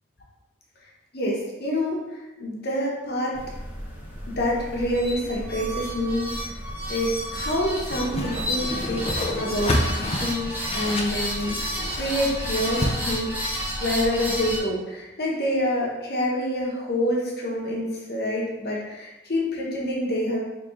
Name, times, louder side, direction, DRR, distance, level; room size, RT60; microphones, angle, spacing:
voice 1, 1.1-2.0 2.4-3.4 4.3-6.3 6.9-9.1 9.4-11.6 11.9-13.3 13.8-20.4, left 1 dB, 50° left, -3 dB, 0.9 m, -27 dB
sound 1, 3.3-14.6, equal, 10° right, 0.7 m, -31 dB
Whoosh swoosh swish, 7.9-12.9, left 1 dB, 30° left, 0.4 m, -29 dB
3.5 x 3.3 x 3.1 m, 1.0 s
head